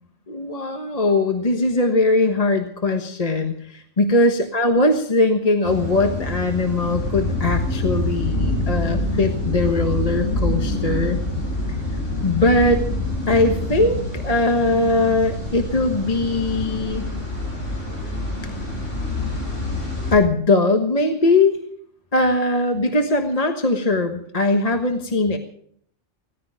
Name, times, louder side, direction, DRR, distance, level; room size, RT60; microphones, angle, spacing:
voice 1, 0.3-11.2 12.2-12.8 13.3-17.1 20.1-21.6 22.1-25.4, left 2 dB, 30° left, 4 dB, 1.4 m, -20 dB
sound 1, 5.6-20.2, left 1 dB, 75° left, 7.4 m, -26 dB
17.5 x 14.5 x 4.9 m, 0.63 s
omnidirectional pair, 1.3 m